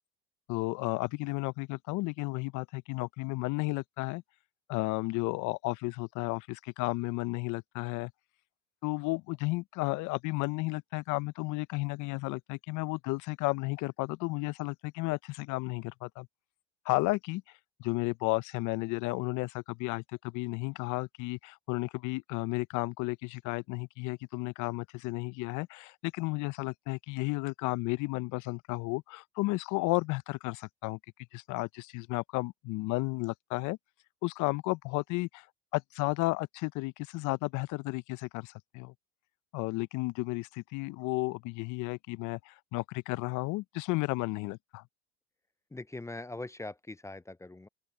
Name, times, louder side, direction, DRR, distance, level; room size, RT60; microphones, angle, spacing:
voice 1, 0.5-4.2 4.7-8.1 8.8-16.3 16.8-17.4 17.8-31.0 31.3-33.8 34.2-35.5 35.7-38.9 39.5-44.8, left 23 dB, 55° left, 0.9 m, -33 dB
voice 2, 45.7-47.7, left 2 dB, 10° left, 0.7 m, -42 dB
open air
hypercardioid pair, 85°, 37 cm